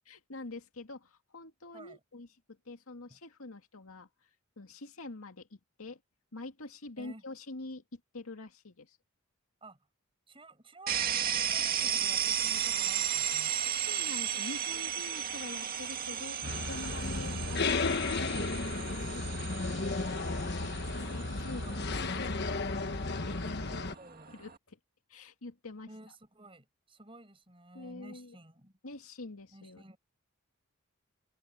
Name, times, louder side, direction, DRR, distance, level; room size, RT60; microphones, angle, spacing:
voice 1, 0.1-4.3 4.6-6.0 6.3-9.0 13.6-18.5 19.0-21.6 21.9-23.9 24.3-24.8 25.1-25.9 27.7-28.4 28.8-29.9, left 2 dB, 85° left, 2.1 m, -46 dB
voice 2, 10.3-13.5 21.4-21.8 23.7-24.3 25.9-28.7 29.5-30.0, right 2 dB, 25° right, 6.7 m, -53 dB
sound 1, 10.9-24.6, right 9 dB, 45° right, 2.1 m, -35 dB
sound 2, 16.4-23.9, left 3 dB, 50° left, 1.3 m, -34 dB
open air
head